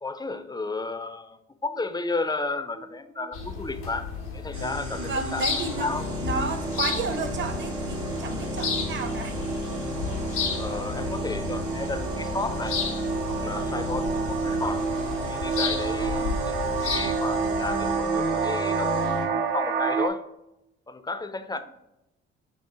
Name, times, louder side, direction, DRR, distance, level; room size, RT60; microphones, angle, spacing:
voice 1, 0.0-5.5 5.8-6.1 10.6-12.8 13.3-14.9 15.2-20.2 20.9-21.6, left 3 dB, 15° left, 9 dB, 0.3 m, -33 dB
sound 1, 1.7-2.2 2.8-3.0 3.2-3.5 3.8-20.1, right 5 dB, 75° right, 0.6 m, -31 dB
sound 2, 3.3-17.9, left 5 dB, 85° left, 0.6 m, -33 dB
sound 3, 4.5-19.3, equal, 90° right, 1.0 m, -35 dB
voice 2, 5.0-5.9 6.2-9.4 16.0-16.3, right 4 dB, 35° right, 7 dB, 0.6 m, -32 dB
5.7 x 2.1 x 3.7 m, 0.87 s
hypercardioid pair, 40°, 34 cm